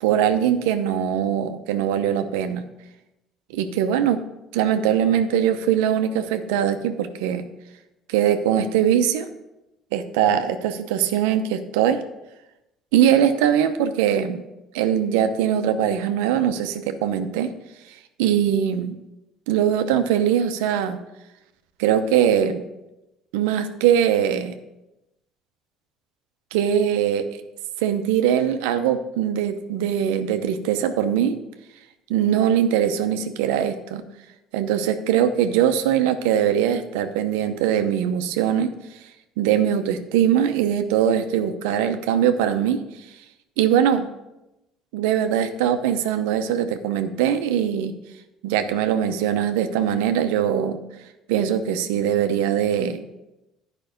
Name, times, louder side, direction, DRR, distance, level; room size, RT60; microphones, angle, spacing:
voice 1, 0.0-2.6 3.5-4.2 4.5-7.4 8.1-9.3 9.9-12.0 12.9-14.4 14.7-17.5 18.2-19.0 19.5-21.0 21.8-22.6 23.3-24.5 26.5-27.4 27.8-31.4 32.1-34.0 34.5-38.7 39.4-42.8 43.6-44.1 44.9-47.9 48.4-50.8 51.3-53.0, right 9 dB, 85° right, 8 dB, 0.7 m, -21 dB
10.5 x 5.4 x 5.2 m, 0.95 s
supercardioid pair, 75°, 0 cm